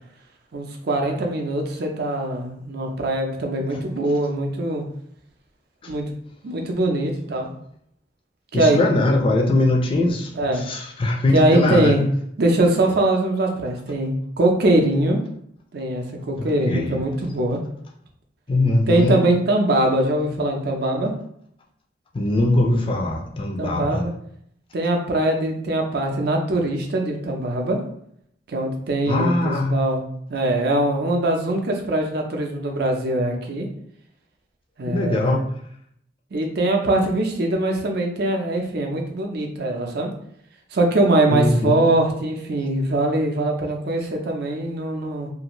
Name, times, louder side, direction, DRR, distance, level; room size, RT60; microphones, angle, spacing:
voice 1, 0.5-4.8 5.9-6.0 6.4-7.5 8.5-8.8 10.3-10.6 11.3-12.0 12.4-15.2 15.7-17.6 18.9-21.1 23.6-24.1 24.7-27.8 28.5-30.0 30.3-33.7 34.8-35.4 36.3-40.1 40.7-45.3, right 1 dB, 55° right, 2 dB, 0.5 m, -22 dB
voice 2, 8.5-10.3 10.6-11.9 16.4-17.0 18.5-19.2 22.1-24.0 29.1-29.8 34.9-35.4 41.3-41.7, left 2 dB, 30° left, 1 dB, 0.4 m, -21 dB
2.6 x 2.4 x 3.0 m, 0.69 s
head